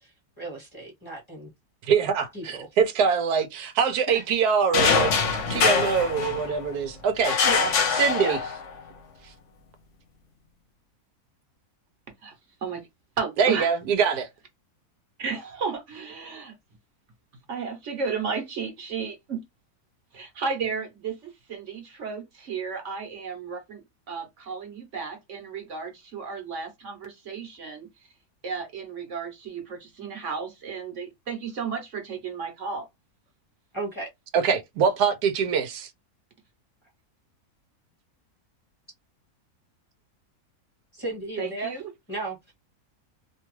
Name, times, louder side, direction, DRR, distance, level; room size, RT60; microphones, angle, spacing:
voice 1, 0.0-1.5 2.3-2.7 4.1-4.2 7.4-8.4 33.7-34.1 40.9-41.8 42.1-42.5, right 2 dB, 20° left, 1.1 m, -35 dB
voice 2, 1.9-5.2 5.5-7.4 8.0-8.4 13.4-14.3 34.3-35.9, right 6 dB, 85° right, 1.2 m, -23 dB
sound 1, 4.7-6.7 7.2-8.8, left 5 dB, 60° left, 1.0 m, -23 dB
voice 3, 13.2-13.7 15.2-16.5 17.5-19.4 20.1-27.9 28.4-32.9 41.4-41.9, right 5 dB, 55° right, 1.1 m, -33 dB
2.8 x 2.3 x 3.0 m
omnidirectional pair, 1.6 m